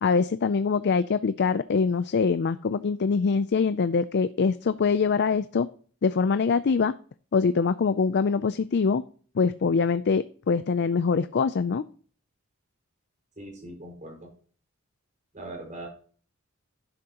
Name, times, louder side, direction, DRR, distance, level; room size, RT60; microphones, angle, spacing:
voice 1, 0.0-5.7 6.0-6.9 7.3-9.0 9.4-11.8, left 5 dB, 55° left, 13 dB, 0.4 m, -24 dB
voice 2, 13.4-14.3 15.3-15.9, right 1 dB, 35° right, 1 dB, 5.2 m, -40 dB
11.5 x 10.0 x 2.9 m, 0.43 s
head